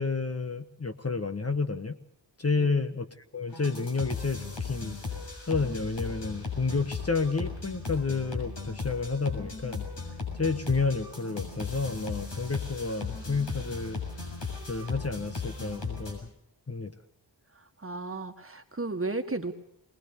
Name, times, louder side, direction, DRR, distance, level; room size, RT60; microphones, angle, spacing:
voice 1, 0.0-2.0 2.4-3.1 3.3-5.0 5.5-9.8 10.4-14.0 14.7-16.3 16.7-16.9, left 4 dB, 35° left, 8 dB, 1.3 m, -30 dB
sound 1, 3.5-16.1, left 4 dB, 70° left, 7.0 m, -37 dB
voice 2, 17.5-19.5, right 3 dB, 30° right, 6 dB, 1.8 m, -34 dB
22.5 x 19.5 x 6.7 m, 0.76 s
wide cardioid pair, 85°, 44 cm